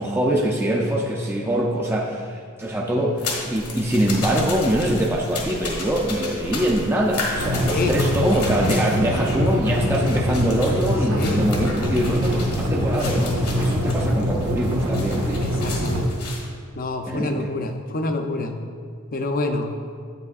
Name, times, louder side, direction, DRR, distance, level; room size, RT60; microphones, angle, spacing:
voice 1, 0.0-15.4 17.1-17.5, right 1 dB, 10° right, -2 dB, 0.4 m, -23 dB
sound 1, 3.2-16.4, left 3 dB, 75° left, 1.6 m, -33 dB
sound 2, 7.4-16.0, equal, 85° right, 1.0 m, -24 dB
voice 2, 11.1-11.4 15.4-16.1 16.8-18.6 19.1-19.7, left 2 dB, 40° left, 5 dB, 0.5 m, -27 dB
8.5 x 8.2 x 2.4 m, 2.2 s
head